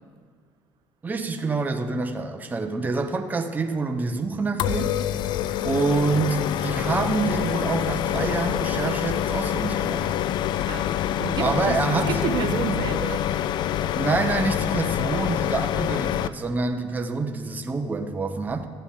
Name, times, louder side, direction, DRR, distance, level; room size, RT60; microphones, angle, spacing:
voice 1, 1.0-5.0 5.6-10.1 11.4-12.1 14.0-18.6, right 3 dB, 20° right, 5 dB, 0.8 m, -26 dB
sound 1, 4.6-16.3, left 11 dB, 60° left, 0.4 m, -26 dB
voice 2, 10.7-13.2, right 7 dB, 55° right, 7 dB, 0.8 m, -30 dB
14.5 x 9.0 x 3.7 m, 2.1 s
cardioid pair, 105°, 9 cm